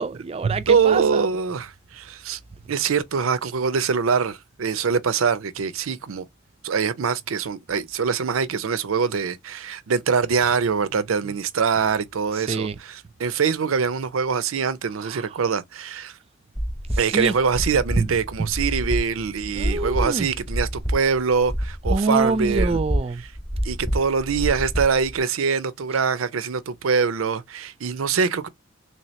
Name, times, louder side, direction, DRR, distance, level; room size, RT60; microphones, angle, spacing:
voice 1, 0.0-1.2 11.2-11.3 12.5-12.7 15.1-15.2 17.1-17.3 18.0-18.1 19.6-20.3 21.9-23.2, right 3 dB, 30° right, 0.3 m, -25 dB
voice 2, 0.7-2.4 2.7-6.3 6.6-16.2 17.0-22.8 23.2-23.3 23.6-28.5, right 6 dB, 85° right, 0.5 m, -23 dB
sound 1, 16.6-25.2, equal, 5° left, 0.9 m, -27 dB
3.2 x 2.8 x 3.1 m
head